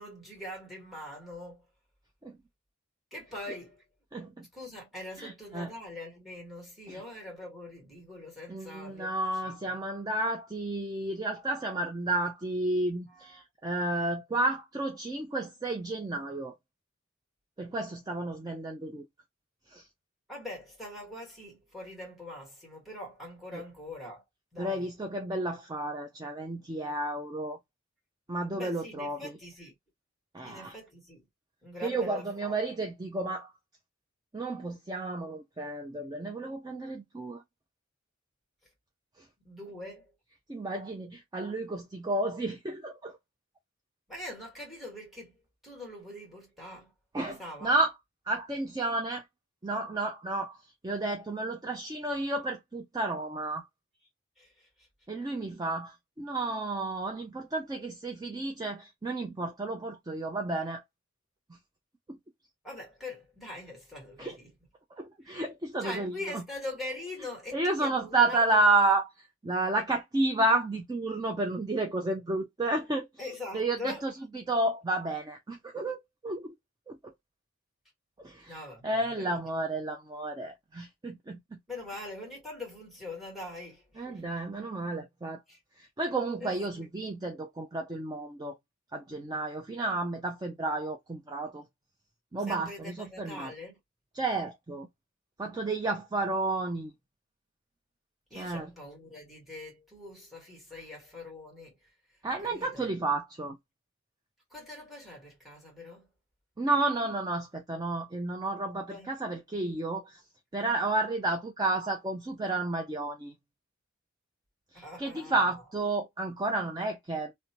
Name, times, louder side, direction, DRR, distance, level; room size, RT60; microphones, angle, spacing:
voice 1, 0.0-1.6 3.1-3.8 4.5-9.2 9.4-9.8 13.1-13.4 20.3-24.2 24.5-24.9 28.5-29.7 30.4-31.2 31.6-32.6 39.4-40.1 44.1-45.4 45.6-46.9 47.3-47.7 54.4-54.9 62.6-64.5 65.2-65.4 65.8-68.6 73.2-74.1 78.5-79.4 81.7-84.2 85.5-85.6 86.4-86.9 92.5-93.8 98.3-101.7 102.4-102.9 104.5-106.1 108.9-109.1 114.7-115.6, left 2 dB, ahead, 1.4 m, -43 dB
voice 2, 4.1-4.5 5.2-5.7 6.9-7.0 8.5-16.5 17.6-19.1 19.7-19.8 24.6-27.6 28.3-29.3 30.3-30.7 31.8-33.5 34.3-37.4 40.5-43.2 47.1-47.9 48.3-49.2 49.6-50.6 50.8-53.7 55.1-60.8 62.1-62.2 64.2-64.4 65.0-66.4 67.5-69.1 69.4-73.1 73.5-76.5 76.9-77.1 78.2-78.6 78.8-81.6 84.0-85.4 85.8-88.6 88.9-91.6 92.3-93.5 94.1-94.9 95.4-96.9 98.4-98.7 102.2-103.6 106.6-110.2 110.5-113.3 114.7-117.3, right 2 dB, 20° right, 0.4 m, -31 dB
2.7 x 2.2 x 2.8 m
head